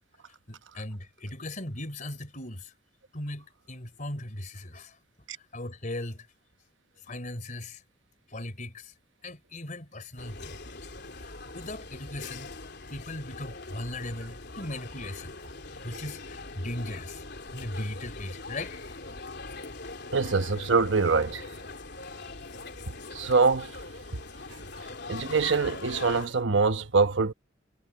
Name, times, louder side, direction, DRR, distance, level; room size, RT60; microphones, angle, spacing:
voice 1, 0.5-2.7 3.1-5.0 5.4-6.3 7.1-7.8 8.3-8.9 9.2-10.6 11.2-12.5 12.9-15.4 15.8-17.2 17.5-18.8, left 1 dB, 40° left, 3.7 m, -38 dB
sound 1, 10.2-26.3, left 3 dB, 60° left, 3.5 m, -42 dB
voice 2, 20.1-21.5 23.1-23.7 25.1-27.3, right 4 dB, 70° right, 1.0 m, -24 dB
head